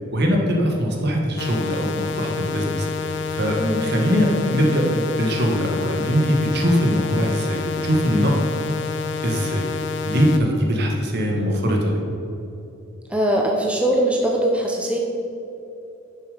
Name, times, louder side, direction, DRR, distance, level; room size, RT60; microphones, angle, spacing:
voice 1, 0.1-8.3 9.2-9.7 10.0-12.0, equal, 55° right, 1 dB, 1.6 m, -21 dB
sound 1, 1.4-10.4, left 5 dB, 65° left, 0.6 m, -28 dB
voice 2, 13.1-15.0, right 1 dB, 5° right, 0 dB, 0.7 m, -21 dB
10.5 x 7.0 x 5.1 m, 2.9 s
head